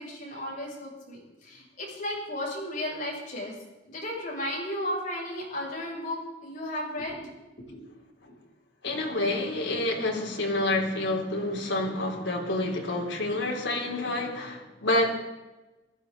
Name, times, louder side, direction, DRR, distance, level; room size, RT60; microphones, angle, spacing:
voice 1, 0.0-3.6 3.9-7.3 7.7-7.9 8.2-8.4, left 1 dB, 45° left, -4 dB, 7.0 m, -34 dB
voice 2, 8.8-15.1, left 2 dB, 80° left, 0 dB, 3.4 m, -28 dB
19.5 x 14.0 x 4.0 m, 1.1 s
head